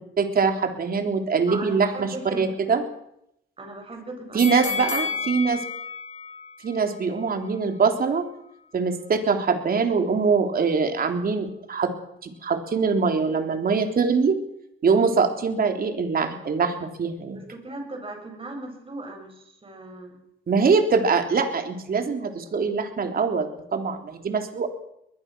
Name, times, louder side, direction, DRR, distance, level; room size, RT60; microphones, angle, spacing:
voice 1, 0.2-2.8 4.3-5.6 6.6-8.3 8.7-11.9 12.2-14.4 14.8-17.4 20.5-24.7, right 5 dB, 50° right, 5 dB, 3.6 m, -23 dB
voice 2, 1.5-2.5 3.6-5.2 17.3-20.2, right 2 dB, 30° right, 3 dB, 7.8 m, -38 dB
sound 1, 4.4-7.5 7.9-8.0, left 6 dB, 35° left, 3.5 m, -32 dB
21.5 x 21.0 x 6.3 m, 0.78 s
cardioid pair, 90°, 20 cm